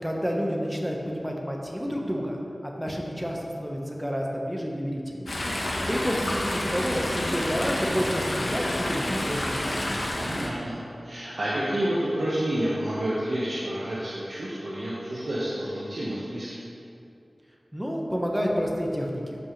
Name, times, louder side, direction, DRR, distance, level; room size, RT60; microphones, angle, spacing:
voice 1, 0.0-2.4 2.6-5.4 5.8-9.8 17.7-19.4, equal, 5° right, -1 dB, 1.3 m, -29 dB
Chatter / Stream, 5.3-10.5, left 1 dB, 70° left, 1.3 m, -29 dB
voice 2, 10.2-10.7 11.0-16.6, right 1 dB, 80° right, -9 dB, 1.4 m, -29 dB
13.5 x 5.5 x 3.3 m, 2.6 s
wide cardioid pair, 70°, 0 cm